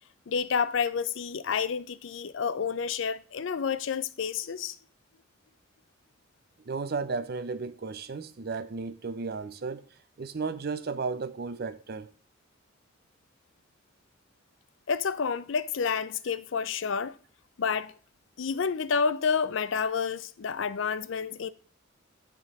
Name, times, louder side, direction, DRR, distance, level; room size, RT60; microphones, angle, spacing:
voice 1, 0.3-4.7 14.9-17.2 17.6-17.9 18.4-21.5, left 6 dB, 65° left, 0.5 m, -29 dB
voice 2, 6.6-12.1, right 4 dB, 50° right, 0.6 m, -34 dB
8.8 x 3.7 x 5.3 m
head